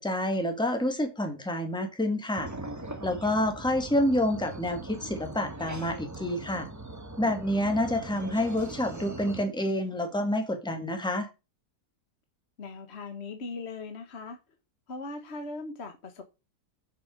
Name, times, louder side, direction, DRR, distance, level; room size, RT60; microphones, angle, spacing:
voice 1, 0.0-2.5 3.0-6.7 7.2-11.3, left 1 dB, 5° left, 1.8 m, -28 dB
sound 1, 2.4-9.4, right 2 dB, 10° right, 1.0 m, -40 dB
voice 2, 12.6-14.4 14.9-16.2, left 3 dB, 45° left, 1.4 m, -39 dB
7.1 x 6.8 x 6.4 m
omnidirectional pair, 1.7 m